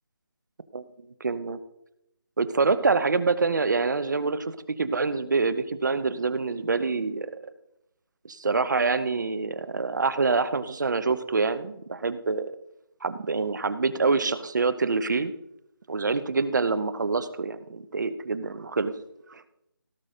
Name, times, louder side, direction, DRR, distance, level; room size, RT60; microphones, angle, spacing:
voice 1, 1.2-1.6 2.4-7.3 8.2-12.5 13.0-15.3 15.9-18.9 19.3-19.4, right 4 dB, 50° right, 13 dB, 1.0 m, -26 dB
17.0 x 6.2 x 5.1 m, 0.81 s
figure-of-eight pair, 165°, 12 cm